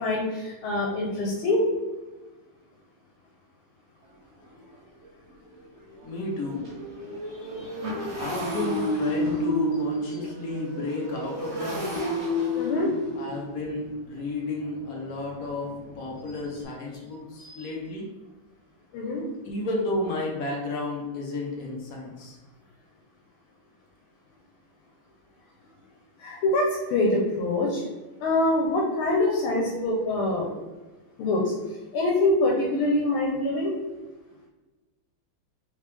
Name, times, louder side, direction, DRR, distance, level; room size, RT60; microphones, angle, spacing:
voice 1, 0.0-1.6 7.5-7.7 12.5-12.9 17.4-17.6 18.9-19.2 26.2-27.8 28.2-30.5 31.2-31.5 31.9-33.7, left 2 dB, 85° left, -1 dB, 1.6 m, -25 dB
Motorcycle, 4.0-4.1 4.6-4.8 5.0-16.6, equal, 45° right, 0.9 m, -32 dB
voice 2, 6.0-6.7 8.2-11.8 13.2-15.7 16.0-18.1 19.4-22.4, left 2 dB, 55° left, -2 dB, 1.0 m, -32 dB
3.8 x 3.3 x 3.3 m, 1.2 s
omnidirectional pair, 2.3 m